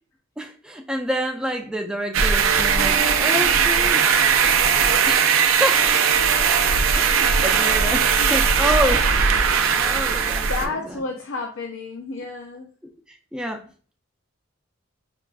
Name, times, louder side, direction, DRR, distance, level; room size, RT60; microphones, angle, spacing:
voice 1, 0.4-4.2 4.6-5.9 6.9-9.1 9.7-11.0 13.1-13.7, equal, 5° right, 3 dB, 0.4 m, -28 dB
sound 1, 2.1-10.7, right 6 dB, 85° right, 0.4 m, -19 dB
voice 2, 7.9-8.3 10.4-12.7, left 3 dB, 75° left, 2 dB, 0.5 m, -31 dB
4.5 x 2.4 x 2.2 m, 0.41 s
head